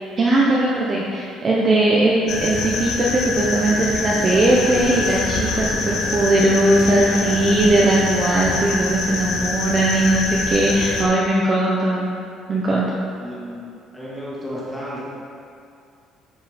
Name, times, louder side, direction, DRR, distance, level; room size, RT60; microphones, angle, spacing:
voice 1, 0.2-12.1 12.5-12.9, right 1 dB, 25° right, -5 dB, 1.0 m, -19 dB
sound 1, 2.3-11.0, left 3 dB, 55° left, 1.2 m, -25 dB
voice 2, 6.7-7.1 13.2-13.6 13.9-15.0, equal, ahead, -7 dB, 2.1 m, -33 dB
12.5 x 5.4 x 5.2 m, 2.4 s
cardioid pair, 170°, 0 cm